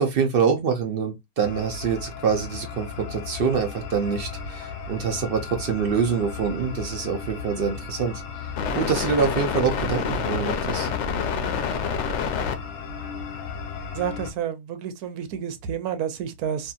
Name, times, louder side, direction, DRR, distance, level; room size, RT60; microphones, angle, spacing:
voice 1, 0.0-8.1 8.7-10.9, right 6 dB, 65° right, 0.5 m, -25 dB
sound 1, 1.4-14.3, left 6 dB, 65° left, 0.7 m, -31 dB
voice 2, 13.9-16.7, right 8 dB, 85° right, 1.1 m, -30 dB
2.7 x 2.5 x 2.3 m
omnidirectional pair, 1.5 m